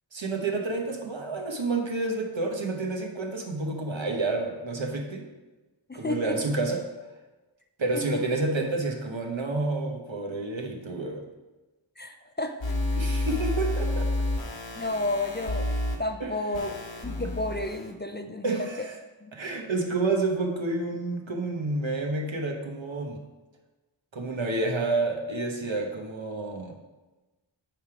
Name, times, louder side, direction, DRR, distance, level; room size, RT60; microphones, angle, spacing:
voice 1, 0.1-5.3 5.9-6.9 7.8-11.2 13.0-14.1 16.2-16.3 18.4-18.9 19.3-23.2 24.1-26.7, right 3 dB, 75° right, 1 dB, 1.1 m, -29 dB
voice 2, 5.9-6.4 7.9-8.2 12.0-12.6 14.7-18.7 19.2-19.4, left 2 dB, 25° left, 6 dB, 0.4 m, -32 dB
sound 1, 12.6-16.0 16.5-17.9, left 1 dB, 70° left, 1.2 m, -29 dB
9.0 x 3.5 x 4.8 m, 1.1 s
wide cardioid pair, 40°, 47 cm